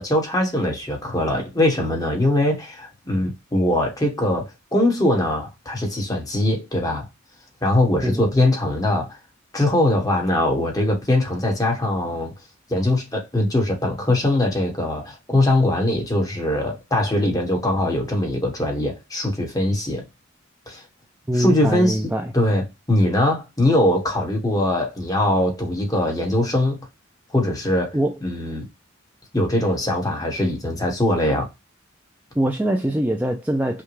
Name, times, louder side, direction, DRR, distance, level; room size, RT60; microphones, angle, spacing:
voice 1, 0.0-7.0 7.6-9.2 9.5-12.3 12.7-20.0 20.7-20.8 21.3-22.0 22.3-26.8 27.3-28.6 29.3-31.5, left 1 dB, 20° left, 1.4 m, -21 dB
voice 2, 21.3-22.3 27.9-28.1 32.4-33.8, right 1 dB, 10° right, 0.4 m, -23 dB
5.6 x 2.3 x 3.2 m
head